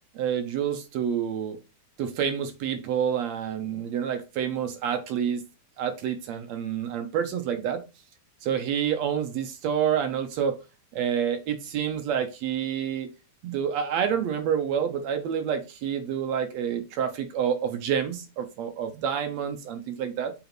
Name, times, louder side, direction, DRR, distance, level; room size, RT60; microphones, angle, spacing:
voice 1, 0.2-1.6 2.0-5.4 5.8-7.8 8.4-10.6 10.9-13.1 13.4-20.3, right 8 dB, 70° right, 1.9 m, -28 dB
7.8 x 4.2 x 4.4 m
omnidirectional pair, 3.6 m